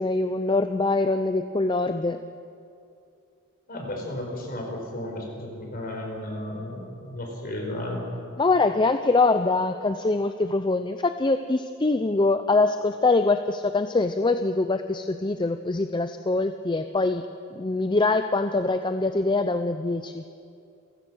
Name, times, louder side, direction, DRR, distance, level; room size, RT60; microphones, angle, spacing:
voice 1, 0.0-2.2 8.4-17.3 17.5-20.2, left 3 dB, 20° left, 9 dB, 0.6 m, -23 dB
voice 2, 3.7-8.0, left 1 dB, 45° left, 1 dB, 4.8 m, -34 dB
28.5 x 16.0 x 6.3 m, 2.5 s
head